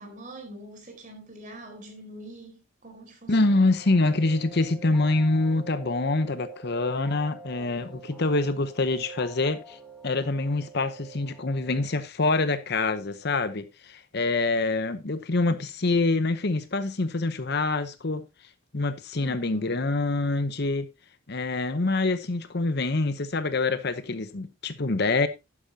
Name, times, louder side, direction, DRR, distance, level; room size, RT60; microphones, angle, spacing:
voice 1, 0.0-3.6 19.2-19.8, right 1 dB, 35° right, 4.1 m, -44 dB
voice 2, 3.3-9.8 10.0-18.2 18.7-20.9 21.3-25.3, left 2 dB, 50° left, 0.8 m, -25 dB
sound 1, 3.3-11.8, right 4 dB, ahead, 3.1 m, -46 dB
12.0 x 9.8 x 2.8 m
head